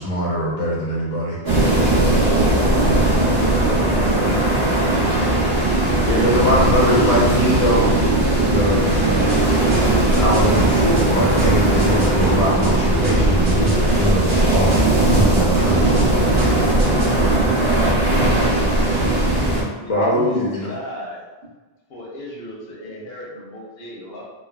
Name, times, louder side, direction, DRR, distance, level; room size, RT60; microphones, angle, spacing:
voice 1, 0.0-1.4 6.0-7.9 8.4-9.5 10.1-16.0 19.9-20.7, equal, 50° left, -5 dB, 0.5 m, -22 dB
sound 1, 1.5-19.6, right 1 dB, 75° right, 1.2 m, -18 dB
voice 2, 2.2-5.3 23.3-23.4, left 1 dB, 50° right, -11 dB, 0.9 m, -30 dB
sound 2, 8.9-17.2, equal, 25° right, 0.6 m, -30 dB
voice 3, 17.5-18.8 19.7-21.2 21.9-24.2, left 1 dB, 80° left, -4 dB, 0.9 m, -35 dB
3.3 x 2.0 x 2.2 m, 1.3 s
omnidirectional pair, 1.0 m